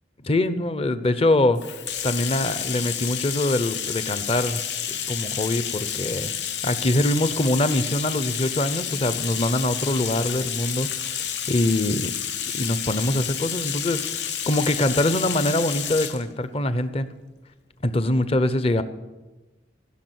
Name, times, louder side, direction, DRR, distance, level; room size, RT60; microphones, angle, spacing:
voice 1, 0.2-1.6 2.0-6.3 6.6-12.1 12.5-17.1 17.8-18.8, left 1 dB, 35° left, 12 dB, 0.7 m, -24 dB
Bathtub (filling or washing), 1.6-16.2, left 9 dB, 75° left, 0.9 m, -30 dB
16.5 x 6.3 x 9.3 m, 1.1 s
head